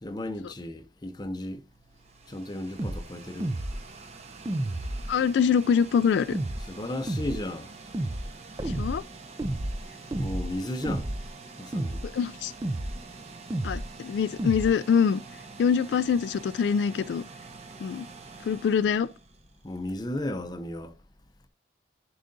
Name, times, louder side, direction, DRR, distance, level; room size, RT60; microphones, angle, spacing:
voice 1, 0.0-1.6 2.3-3.5 6.7-7.7 10.2-11.1 11.6-12.0 19.6-20.9, left 1 dB, 25° left, 0.6 m, -34 dB
sound 1, 1.7-19.8, right 4 dB, 40° right, 0.9 m, -47 dB
sound 2, 2.8-3.0 3.4-3.8 4.5-5.2 6.3-6.7 7.1-7.4 7.9-8.3 8.6-9.0 9.4-9.8 10.1-10.5 10.8-11.3 11.7-12.1 12.6-13.0 13.5-13.9 14.4-14.7, right 1 dB, 20° right, 0.4 m, -31 dB
voice 2, 5.1-6.4 8.6-9.0 12.0-12.5 13.6-15.2 15.6-17.2 17.8-18.1 18.4-19.1, left 7 dB, 80° left, 0.3 m, -24 dB
10.5 x 4.8 x 2.6 m
head